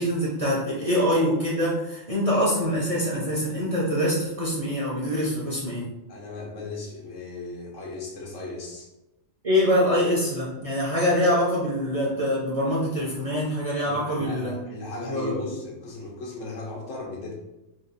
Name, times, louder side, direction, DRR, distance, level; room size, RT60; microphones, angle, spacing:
voice 1, 0.0-5.9 9.4-14.6 15.1-15.5, equal, 35° right, -6 dB, 0.6 m, -24 dB
voice 2, 6.1-8.9 13.8-17.3, left 2 dB, 70° left, -2 dB, 1.2 m, -36 dB
3.1 x 2.4 x 3.9 m, 0.97 s
omnidirectional pair, 1.4 m